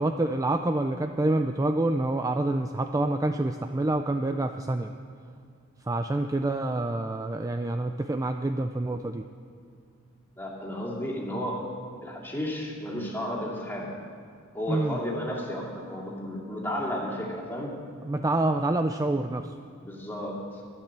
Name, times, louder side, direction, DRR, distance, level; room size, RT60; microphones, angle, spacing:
voice 1, 0.0-4.9 5.9-9.2 14.7-15.0 18.0-19.5, right 2 dB, 15° right, 7 dB, 0.4 m, -27 dB
voice 2, 10.4-11.7 12.0-13.9 14.5-17.8 19.8-20.6, equal, 10° left, -4 dB, 2.5 m, -33 dB
12.0 x 11.5 x 7.5 m, 2.3 s
head